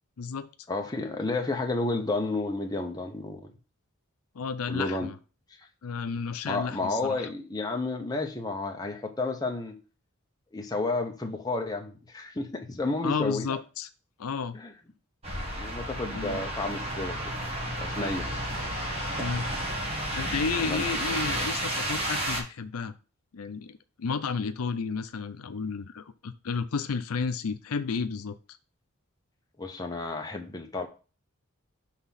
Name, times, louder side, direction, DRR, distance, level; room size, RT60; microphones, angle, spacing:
voice 1, 0.2-0.5 4.3-5.2 5.8-7.3 13.0-13.9 14.2-14.6 16.1-16.5 19.2-19.5 20.1-22.9 23.3-28.4, left 5 dB, 80° left, 0.5 m, -32 dB
voice 2, 0.7-3.5 4.7-5.1 6.4-9.7 10.5-13.5 14.5-14.7 15.6-17.2 17.8-18.3 20.6-20.8 29.6-30.9, left 2 dB, 15° left, 0.8 m, -31 dB
sound 1, 15.2-22.4, right 1 dB, 30° right, 1.5 m, -32 dB
5.9 x 3.5 x 5.7 m
head